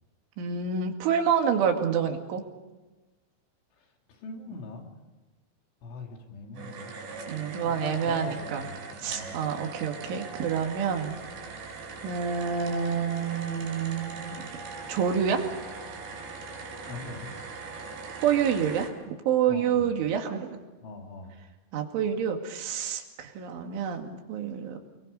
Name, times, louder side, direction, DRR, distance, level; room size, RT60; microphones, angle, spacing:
voice 1, 0.4-2.5 7.3-8.6 9.0-11.1 12.0-14.5 14.9-15.5 18.2-18.9 19.3-20.6 21.7-24.8, right 7 dB, 85° right, 4 dB, 4.6 m, -28 dB
voice 2, 3.8-4.9 5.8-6.9 7.6-9.4 16.9-17.3 19.5-20.0 20.8-21.4, left 3 dB, 80° left, 2 dB, 5.2 m, -42 dB
sound 1, 6.5-18.9, right 4 dB, 65° right, 6.3 m, -40 dB
29.0 x 22.0 x 5.4 m, 1.2 s
omnidirectional pair, 5.4 m